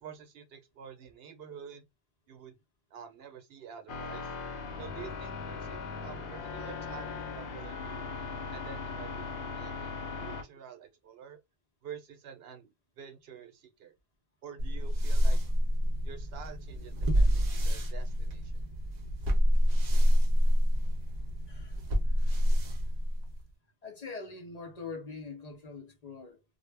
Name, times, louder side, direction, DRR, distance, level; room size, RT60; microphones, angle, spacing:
voice 1, 0.0-1.8 2.3-2.6 2.9-4.3 4.8-8.1 8.5-9.9 10.2-11.4 11.8-13.9 14.4-15.4 16.0-18.6, right 8 dB, 75° right, 0.9 m, -48 dB
sound 1, 3.9-10.4, left 4 dB, 75° left, 0.8 m, -39 dB
sound 2, 14.6-23.5, equal, 50° right, 0.6 m, -27 dB
voice 2, 21.5-22.5 23.8-26.4, left 4 dB, 45° left, 0.6 m, -44 dB
2.1 x 2.1 x 3.2 m
omnidirectional pair, 1.0 m